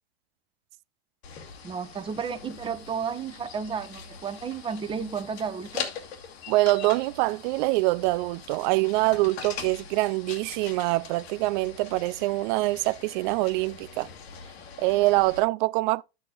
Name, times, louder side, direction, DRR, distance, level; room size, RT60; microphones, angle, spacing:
sound 1, 1.2-15.4, left 6 dB, 80° left, 2.3 m, -42 dB
voice 1, 1.6-5.9, right 6 dB, 15° right, 1.0 m, -32 dB
voice 2, 6.5-14.1 14.8-16.0, right 21 dB, 50° right, 0.4 m, -24 dB
12.0 x 8.1 x 2.5 m
hypercardioid pair, 125°, 31 cm